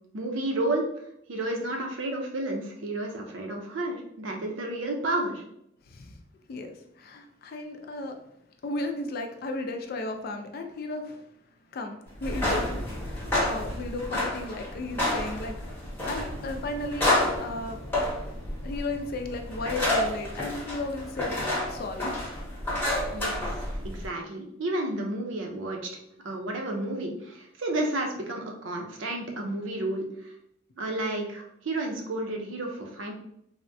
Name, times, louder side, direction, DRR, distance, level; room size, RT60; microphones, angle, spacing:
voice 1, 0.1-0.9 1.3-5.4 23.1-25.9 26.2-30.1 30.8-33.1, right 2 dB, 75° right, 2 dB, 0.6 m, -31 dB
voice 2, 5.8-6.2 6.5-8.2 8.6-11.3 11.7-15.6 16.0-17.1 17.4-17.8 18.6-22.3, left 2 dB, 50° left, 5 dB, 0.4 m, -35 dB
sound 1, 12.2-24.1, left 1 dB, 10° left, 0.8 m, -30 dB
3.4 x 2.1 x 2.6 m, 0.75 s
head